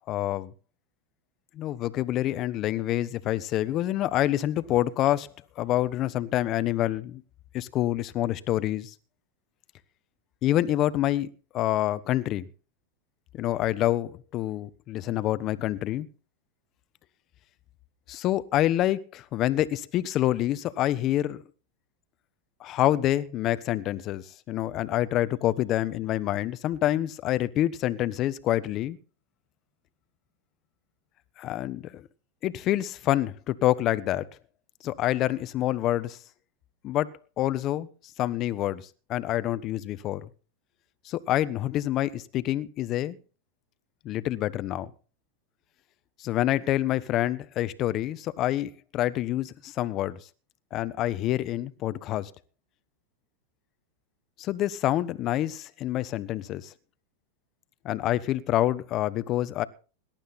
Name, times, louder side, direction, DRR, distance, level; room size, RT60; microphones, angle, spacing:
voice 1, 0.1-0.5 1.5-5.3 5.6-7.2 7.5-8.9 10.4-12.5 13.3-16.1 18.1-21.4 22.6-29.0 31.4-32.0 32.4-34.3 34.8-36.2 36.8-37.1 37.4-37.9 38.2-40.3 41.0-43.2 44.0-44.9 46.2-50.2 50.7-52.3 54.4-56.7 57.8-59.6, left 13 dB, 40° left, 1.1 m, -27 dB
18.5 x 12.0 x 4.2 m
hypercardioid pair, 115°, 0 cm